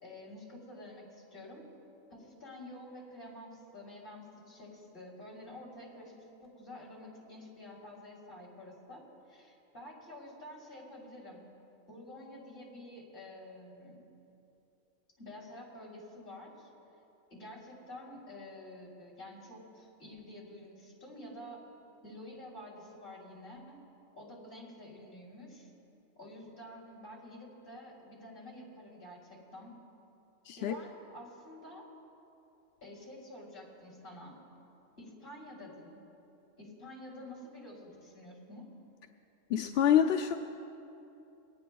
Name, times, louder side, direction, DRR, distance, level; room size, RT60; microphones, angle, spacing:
voice 1, 0.0-1.6 2.1-11.5 11.9-14.0 15.2-16.7 17.3-21.6 22.0-23.8 24.1-25.7 26.2-29.7 30.5-31.9 32.8-34.4 35.0-36.0 36.6-38.7, left 1 dB, 40° left, -4 dB, 3.4 m, -49 dB
voice 2, 39.5-40.3, left 9 dB, 65° left, 3 dB, 0.7 m, -26 dB
23.0 x 18.0 x 2.3 m, 2.8 s
omnidirectional pair, 1.4 m